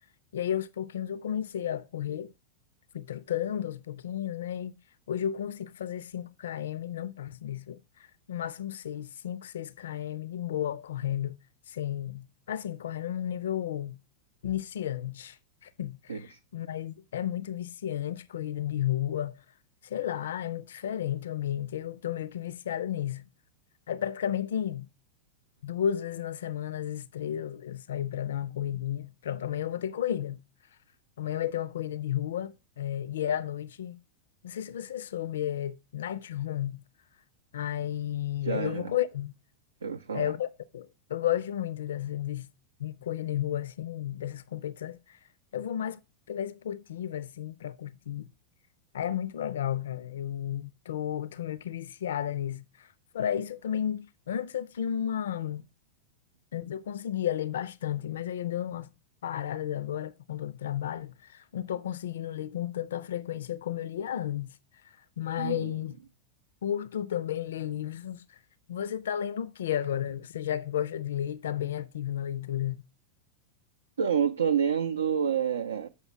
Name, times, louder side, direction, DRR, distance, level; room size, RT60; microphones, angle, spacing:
voice 1, 0.3-2.3 2.9-4.7 5.1-11.4 11.7-14.0 14.4-19.4 19.8-23.2 23.9-24.9 25.6-30.4 31.2-34.0 34.4-36.8 37.5-39.3 40.1-42.5 42.8-45.2 45.5-46.0 46.3-48.3 48.9-55.6 56.5-58.9 59.2-64.6 64.8-66.0 66.6-68.4 68.7-72.8, left 10 dB, 60° left, 0.4 m, -33 dB
voice 2, 38.4-38.9 39.8-40.3 65.4-65.7 74.0-75.9, right 7 dB, 70° right, 0.4 m, -28 dB
7.1 x 5.4 x 5.9 m
figure-of-eight pair, 90°, 0 cm